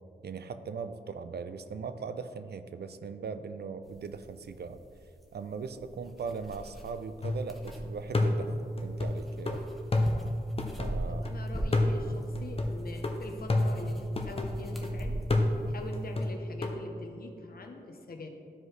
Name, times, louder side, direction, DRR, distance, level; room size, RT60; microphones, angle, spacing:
voice 1, 0.2-4.8 5.3-9.7 10.8-11.3, right 5 dB, 75° right, 11 dB, 0.4 m, -39 dB
sound 1, 3.8-16.3, right 1 dB, ahead, 1.0 m, -42 dB
sound 2, 7.2-7.7 8.1-11.3 11.7-14.9 15.3-16.8, left 1 dB, 35° left, 0.8 m, -30 dB
voice 2, 11.1-15.2 15.7-18.3, left 2 dB, 60° left, 2 dB, 1.0 m, -43 dB
12.5 x 4.7 x 3.3 m, 2.5 s
cardioid pair, 55°, 17 cm